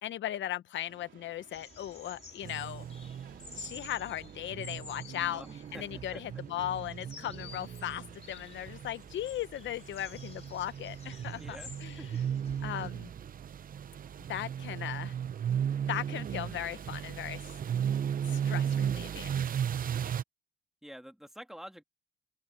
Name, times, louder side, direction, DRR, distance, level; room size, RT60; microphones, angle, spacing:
voice 1, 0.0-2.8 3.5-5.4 5.7-12.0 12.6-13.1 14.3-15.1 15.9-17.6 18.3-19.4, left 12 dB, 70° left, 0.9 m, -37 dB
sound 1, 0.9-7.9, right 10 dB, 70° right, 3.5 m, -62 dB
sound 2, 1.5-12.9, left 4 dB, 30° left, 2.6 m, -51 dB
sound 3, 2.4-20.2, right 8 dB, 45° right, 0.7 m, -36 dB
voice 2, 5.3-6.4 11.4-11.7 12.0-12.2 20.8-21.8, equal, ahead, 2.9 m, -48 dB
open air
cardioid pair, 90°, 20 cm